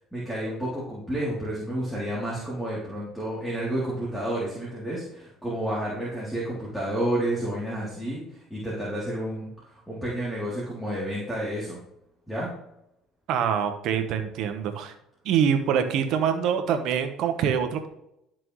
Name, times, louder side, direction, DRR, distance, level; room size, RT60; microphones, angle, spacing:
voice 1, 0.1-11.8 12.3-12.5, right 1 dB, ahead, -7 dB, 3.1 m, -30 dB
voice 2, 13.3-14.9 15.2-17.9, right 8 dB, 65° right, 7 dB, 1.1 m, -25 dB
12.5 x 6.0 x 3.2 m, 0.81 s
supercardioid pair, 100°, 0 cm